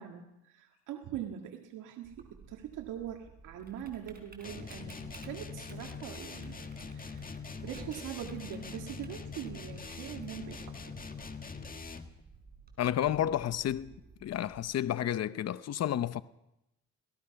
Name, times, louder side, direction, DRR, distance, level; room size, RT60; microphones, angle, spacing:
voice 1, 0.0-11.0, right 10 dB, 85° right, 1.9 m, -43 dB
Typing, 2.0-14.7, right 4 dB, 30° right, 5.1 m, -55 dB
sound 1, 4.4-12.2, left 5 dB, 30° left, 1.8 m, -43 dB
sound 2, 4.9-5.4 7.6-8.5 10.2-11.4 12.9-14.3, right 4 dB, 60° right, 5.0 m, -55 dB
voice 2, 12.8-13.9 14.2-16.2, left 11 dB, 55° left, 0.8 m, -31 dB
27.0 x 18.0 x 5.8 m
cardioid pair, 90°, 30 cm